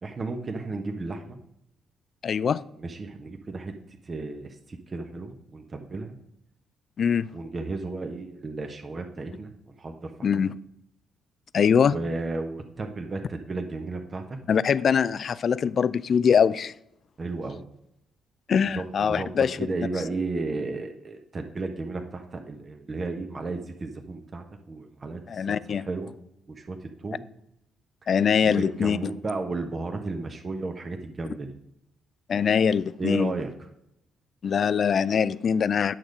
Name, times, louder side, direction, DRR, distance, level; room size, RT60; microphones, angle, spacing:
voice 1, 0.0-1.4 2.8-3.7 4.0-6.2 7.3-9.5 9.8-10.5 11.8-14.4 17.2-17.6 18.6-25.6 25.9-26.1 26.5-27.2 28.4-31.5 33.0-33.5, right 3 dB, 40° right, 4 dB, 1.2 m, -33 dB
voice 2, 2.2-2.6 7.0-7.3 10.2-10.5 11.5-12.0 14.5-16.7 18.5-19.6 25.3-25.9 28.1-29.1 32.3-33.3 34.4-35.9, left 7 dB, 50° left, 18 dB, 0.4 m, -23 dB
9.2 x 6.6 x 5.1 m, 0.78 s
hypercardioid pair, 45°, 0 cm